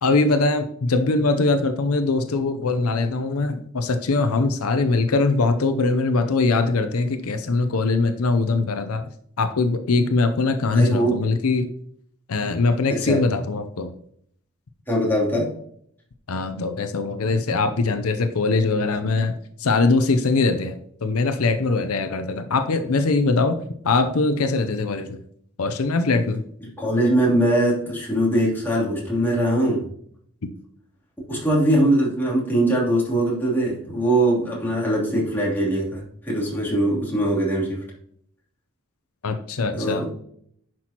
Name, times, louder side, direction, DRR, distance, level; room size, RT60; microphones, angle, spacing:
voice 1, 0.0-9.1 9.4-11.7 12.3-13.9 16.3-19.3 19.6-23.6 23.8-25.2 25.6-26.4 39.2-40.0, left 3 dB, 85° left, 8 dB, 0.6 m, -22 dB
voice 2, 10.7-11.2 12.9-13.2 14.9-15.5 26.8-29.8 31.3-37.8 39.7-40.1, right 1 dB, 10° left, -5 dB, 3.1 m, -21 dB
10.0 x 6.1 x 2.9 m, 0.66 s
head